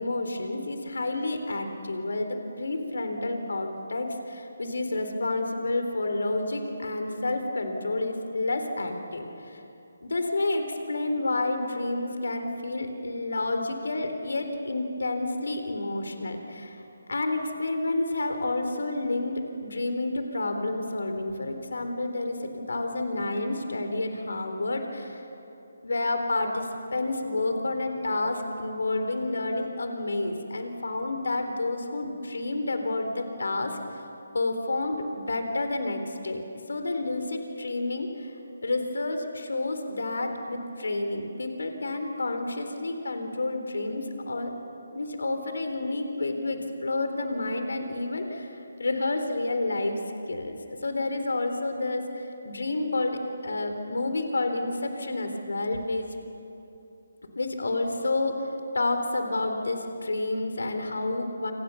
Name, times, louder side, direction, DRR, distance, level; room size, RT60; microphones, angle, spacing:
voice 1, 0.0-9.6 10.0-16.8 17.1-25.3 25.8-33.8 34.3-36.4 36.7-38.3 38.6-44.5 44.9-50.0 50.3-56.1 57.4-61.5, left 2 dB, 70° left, 6 dB, 3.8 m, -30 dB
28.5 x 27.0 x 7.1 m, 2.8 s
figure-of-eight pair, 150°, 0 cm